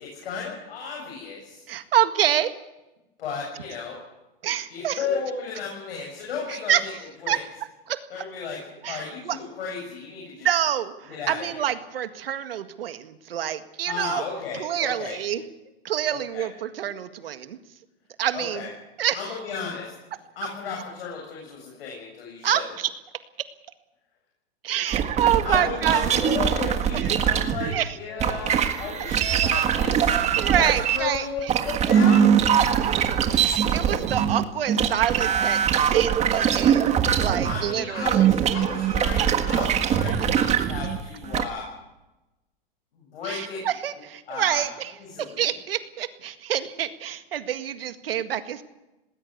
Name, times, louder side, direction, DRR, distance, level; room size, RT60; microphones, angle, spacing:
voice 1, 0.0-1.6 3.2-4.0 4.7-6.9 7.2-7.4 8.1-8.6 8.9-10.5 11.1-11.6 13.8-15.2 16.1-16.4 18.3-18.7 19.1-19.9 20.4-22.6 25.4-30.1 30.6-32.3 37.4-41.7 43.0-43.6 44.3-44.6 45.0-45.5, left 5 dB, 75° left, -2 dB, 7.7 m, -34 dB
voice 2, 1.7-2.5 4.4-5.0 6.5-7.4 7.9-8.2 8.8-9.4 10.4-14.2 14.5-15.4 15.8-17.6 18.2-18.7 19.0-19.2 22.4-22.9 23.4-23.5 24.6-26.1 26.9-27.2 27.7-28.0 30.4-31.5 33.3-36.9 37.2-38.3 39.2-39.6 40.1-40.2 43.2-44.9 45.2-48.6, right 10 dB, 80° right, 9 dB, 1.9 m, -27 dB
sound 1, 24.9-27.8 28.2-41.4, right 8 dB, 25° right, 1.5 m, -22 dB
19.5 x 17.5 x 8.3 m, 0.99 s
hypercardioid pair, 135°, 29 cm